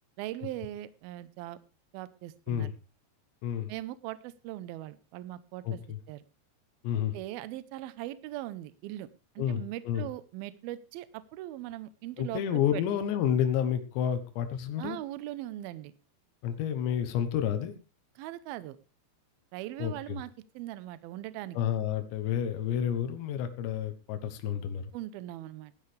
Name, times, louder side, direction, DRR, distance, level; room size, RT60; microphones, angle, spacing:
voice 1, 0.2-1.6 1.9-2.7 3.7-5.8 6.1-6.2 7.1-9.1 9.4-12.8 14.8-15.9 18.2-18.8 19.5-20.3 20.6-21.6 24.9-25.7, right 14 dB, 75° right, 15 dB, 2.3 m, -40 dB
voice 2, 5.6-6.0 6.8-7.2 9.4-10.1 12.2-15.0 16.4-17.7 19.8-20.2 21.5-24.9, left 9 dB, 85° left, 8 dB, 3.4 m, -30 dB
17.0 x 12.5 x 3.4 m, 0.31 s
omnidirectional pair, 5.0 m